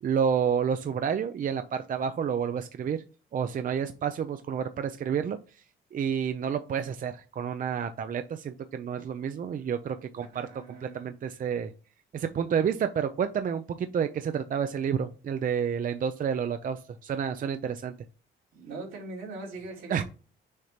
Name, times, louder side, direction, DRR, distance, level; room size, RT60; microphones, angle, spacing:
voice 1, 0.0-3.0 3.3-5.4 5.9-10.5 10.8-11.7 12.1-17.9 19.9-20.0, right 7 dB, 45° right, 0.5 m, -29 dB
voice 2, 10.3-11.1 18.5-20.0, right 2 dB, 80° right, 3.0 m, -41 dB
6.5 x 2.9 x 5.0 m
cardioid pair, 90°, 20 cm